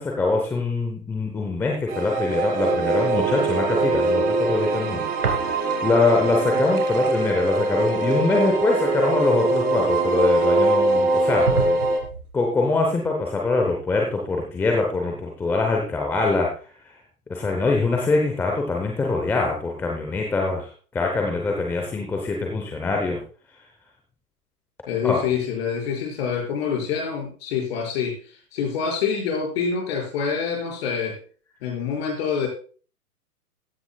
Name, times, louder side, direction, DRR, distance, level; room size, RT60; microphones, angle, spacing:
voice 1, 0.0-11.8 12.3-16.5 17.3-23.2 25.0-25.3, left 3 dB, 5° left, 1 dB, 0.8 m, -23 dB
sound 1, 1.9-12.0, right 3 dB, 20° right, 1.9 m, -22 dB
sound 2, 5.2-6.0 6.3-10.3 10.8-10.9 11.5-12.3, right 5 dB, 75° right, 3.0 m, -32 dB
voice 2, 24.9-31.2 31.6-32.5, left 6 dB, 40° left, 0 dB, 5.5 m, -26 dB
15.5 x 10.0 x 2.3 m, 0.40 s
hypercardioid pair, 140°, 46 cm